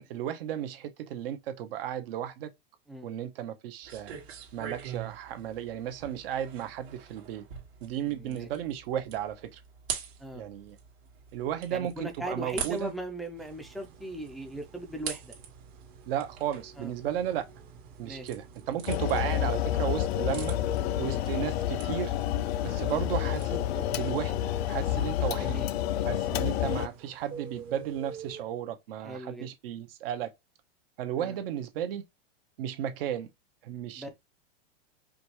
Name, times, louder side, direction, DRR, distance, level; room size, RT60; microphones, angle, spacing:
voice 1, 0.0-2.5 3.0-4.2 4.5-7.4 7.8-9.6 10.3-10.8 11.3-12.9 16.1-17.4 18.0-20.6 21.0-22.1 22.6-25.6 26.0-30.3 31.0-32.0 32.6-33.3 33.6-34.1, right 10 dB, 65° right, 0.9 m, -34 dB
sound 1, 3.8-23.4, right 8 dB, 80° right, 1.7 m, -45 dB
voice 2, 8.1-8.5 10.2-10.4 11.7-15.3 16.8-16.9 18.0-18.3 21.0-21.2 25.4-25.7 26.3-26.4 29.0-29.5 31.2-31.4 34.0-34.1, right 1 dB, ahead, 0.4 m, -39 dB
sound 2, 13.4-28.4, right 6 dB, 30° right, 0.8 m, -51 dB
sound 3, 18.9-26.9, left 11 dB, 80° left, 0.5 m, -29 dB
5.1 x 2.3 x 3.0 m
supercardioid pair, 150°, 31 cm